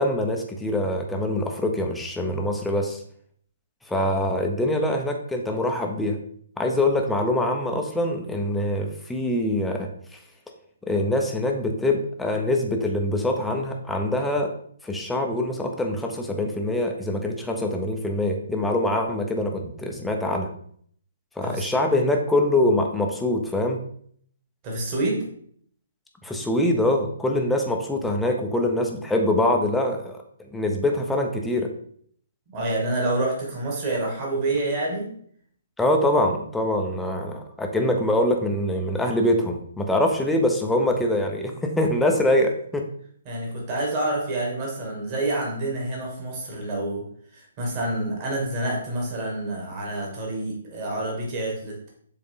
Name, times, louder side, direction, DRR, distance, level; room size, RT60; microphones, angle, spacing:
voice 1, 0.0-3.0 3.9-6.2 6.6-9.9 10.9-14.5 14.8-20.5 21.4-23.8 26.2-30.2 30.5-31.7 35.8-42.8, left 1 dB, 5° left, 2 dB, 0.8 m, -24 dB
voice 2, 24.6-25.3 32.5-35.1 43.3-47.1 47.3-51.8, right 2 dB, 30° right, -1 dB, 2.3 m, -28 dB
6.9 x 3.7 x 3.8 m, 0.62 s
figure-of-eight pair, 135°, 0 cm